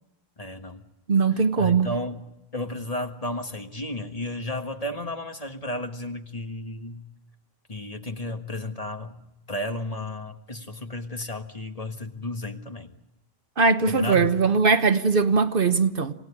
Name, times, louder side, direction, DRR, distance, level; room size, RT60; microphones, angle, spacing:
voice 1, 0.4-0.8 1.3-2.2 2.5-7.0 7.7-12.9 13.8-14.3, left 1 dB, 35° left, 1.7 m, -33 dB
voice 2, 1.1-1.9 13.6-16.1, right 4 dB, 60° right, 1.2 m, -20 dB
28.0 x 17.0 x 9.9 m
omnidirectional pair, 1.1 m